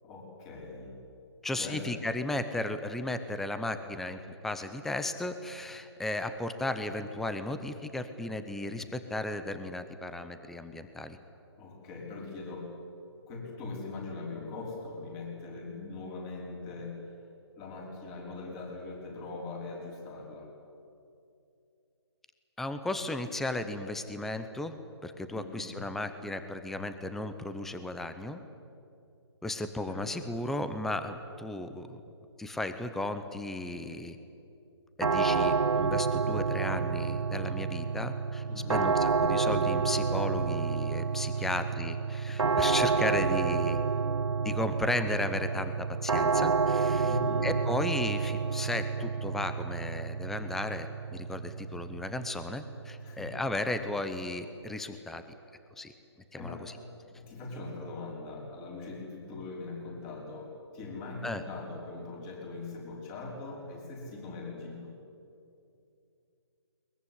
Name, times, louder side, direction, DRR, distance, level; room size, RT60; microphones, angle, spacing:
voice 1, 0.0-0.9 1.5-1.9 11.6-12.7 13.3-17.0 17.5-20.5 25.3-25.8 29.9-30.4 38.4-38.9 41.3-41.5 42.3-42.7 43.9-44.0 47.0-47.5 53.0-53.3 56.4-56.7 57.1-64.9, left 3 dB, 20° left, -1 dB, 5.3 m, -41 dB
voice 2, 1.4-11.2 22.6-24.8 25.0-28.4 29.4-32.0 32.4-34.2 35.0-43.8 44.4-47.1 47.4-55.2 55.8-55.9 56.3-56.7 61.2-61.4, left 2 dB, ahead, 9 dB, 0.7 m, -35 dB
sound 1, 35.0-53.9, right 5 dB, 90° right, 0.5 m, -29 dB
21.5 x 21.5 x 9.7 m, 2.6 s
figure-of-eight pair, 150°, 14 cm